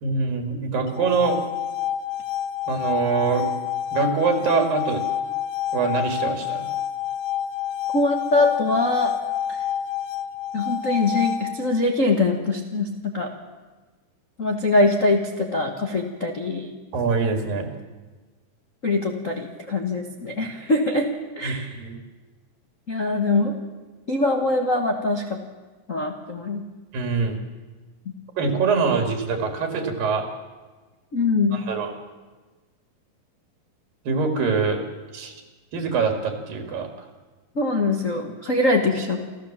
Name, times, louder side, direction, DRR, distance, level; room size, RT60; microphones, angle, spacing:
voice 1, 0.0-1.4 2.7-3.5 3.9-5.0 5.7-6.7 16.9-17.7 21.4-22.0 26.9-27.4 28.4-30.3 31.5-31.9 34.1-34.8 35.1-35.4 35.7-36.9, right 5 dB, 80° right, 4 dB, 4.0 m, -24 dB
sound 1, 0.9-11.9, left 10 dB, 80° left, 1.5 m, -28 dB
voice 2, 7.9-9.1 9.5-9.6 10.5-13.3 14.4-16.7 18.8-21.8 22.9-23.5 24.1-25.4 25.9-26.6 31.1-31.6 37.5-39.2, left 2 dB, 60° left, 1 dB, 0.8 m, -23 dB
28.5 x 14.0 x 7.4 m, 1.3 s
omnidirectional pair, 4.1 m